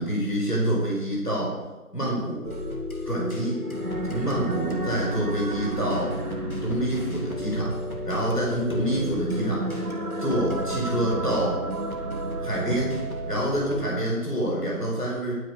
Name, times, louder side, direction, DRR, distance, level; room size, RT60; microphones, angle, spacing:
voice 1, 0.0-1.6 1.9-2.4 3.1-3.6 4.1-6.1 6.6-7.7 8.1-9.7 10.2-11.6 12.4-12.9 13.3-15.3, right 1 dB, 90° left, -3 dB, 4.5 m, -27 dB
sound 1, 2.4-13.9, equal, 65° left, 2.6 m, -33 dB
sound 2, 3.5-13.3, right 2 dB, 70° right, 1.2 m, -34 dB
11.5 x 9.4 x 4.8 m, 1.1 s
figure-of-eight pair, 180°, 45 cm